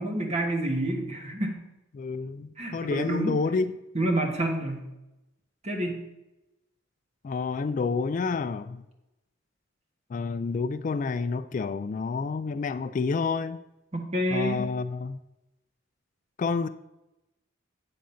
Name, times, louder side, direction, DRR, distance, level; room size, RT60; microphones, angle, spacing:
voice 1, 0.0-1.6 2.6-3.4 3.9-4.8 5.6-6.0 13.9-14.6, right 1 dB, 35° right, 1.3 m, -28 dB
voice 2, 1.9-3.8 7.2-8.8 10.1-13.6 14.3-15.2 16.4-16.7, left 4 dB, 40° left, 0.3 m, -29 dB
8.8 x 3.8 x 7.0 m
head